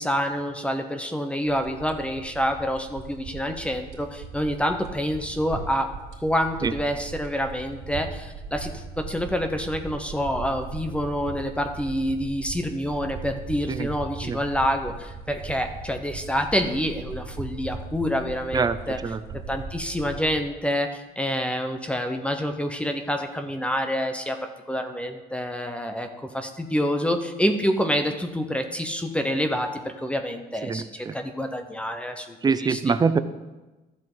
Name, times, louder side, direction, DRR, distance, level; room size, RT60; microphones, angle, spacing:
voice 1, 0.0-5.9 6.2-19.0 19.5-24.4 24.7-26.1 26.3-32.9, equal, 5° left, 5 dB, 0.9 m, -27 dB
sound 1, 1.5-20.4, right 4 dB, 85° right, 2.7 m, -39 dB
voice 2, 18.5-19.2 30.6-31.2 32.4-33.2, right 5 dB, 25° right, 13 dB, 0.6 m, -24 dB
13.0 x 7.5 x 4.0 m, 1.1 s
cardioid pair, 110°, 17 cm